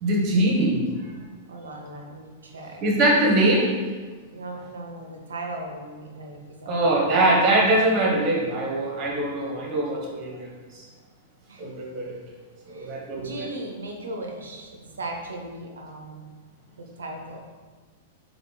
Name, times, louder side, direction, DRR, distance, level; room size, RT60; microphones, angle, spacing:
voice 1, 0.0-0.8 2.8-3.7 6.7-10.4 11.6-12.2 12.7-13.3, right 1 dB, 40° right, -2 dB, 1.2 m, -22 dB
voice 2, 1.5-2.8 4.3-7.2 11.5-11.7 12.7-16.2 16.8-17.4, right 2 dB, 75° right, 1 dB, 0.8 m, -38 dB
3.6 x 3.2 x 4.0 m, 1.4 s
figure-of-eight pair, 100°, 0 cm